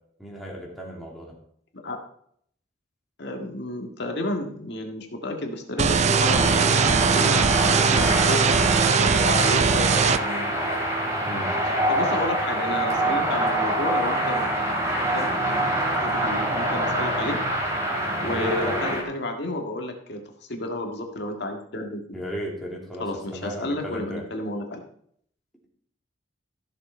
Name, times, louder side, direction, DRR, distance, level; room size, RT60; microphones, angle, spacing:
voice 1, 0.2-1.3 11.2-11.5 18.2-18.8 22.1-24.2, equal, ahead, -4 dB, 2.8 m, -34 dB
voice 2, 3.2-10.6 11.9-14.5 15.1-15.3 16.0-17.4 18.2-22.2 23.0-24.8, left 1 dB, 60° left, 3 dB, 1.8 m, -31 dB
sound 1, 5.8-19.0, right 1 dB, 15° right, 2.8 m, -25 dB
sound 2, 5.8-10.2, right 6 dB, 35° right, 0.4 m, -20 dB
14.5 x 6.9 x 4.4 m, 0.65 s
head